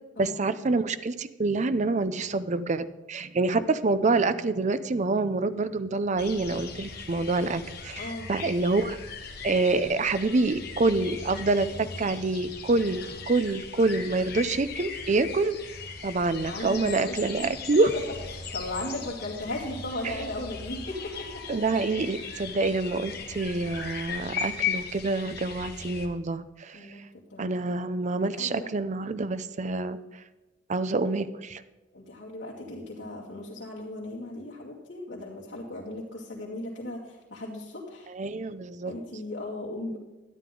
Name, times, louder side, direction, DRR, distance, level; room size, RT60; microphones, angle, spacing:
voice 1, 0.2-9.0 9.4-15.6 16.0-17.9 20.0-20.2 21.5-27.1 27.4-30.2 30.7-31.6 38.1-38.9 39.9-40.0, right 3 dB, 40° right, 12 dB, 0.5 m, -27 dB
sound 1, 6.2-26.1, left 6 dB, 60° left, 1.6 m, -38 dB
voice 2, 8.0-8.3 16.5-17.1 18.5-21.6 26.7-27.0 27.3-27.6 28.3-28.7 31.9-38.1 38.8-40.0, left 1 dB, 75° left, -7 dB, 2.6 m, -37 dB
12.5 x 11.0 x 3.8 m, 1.1 s
head